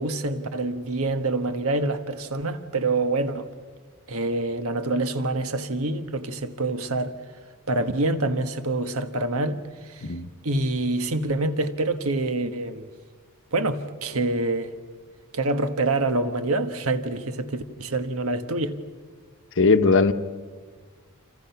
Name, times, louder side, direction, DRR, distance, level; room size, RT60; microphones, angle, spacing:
voice 1, 0.0-3.5 4.1-7.1 7.7-9.6 9.8-10.1 10.4-12.9 13.5-14.7 15.3-18.7, right 2 dB, 70° right, 1.5 m, -26 dB
voice 2, 19.6-20.1, left 3 dB, 60° left, 1.1 m, -18 dB
29.0 x 27.5 x 5.9 m
head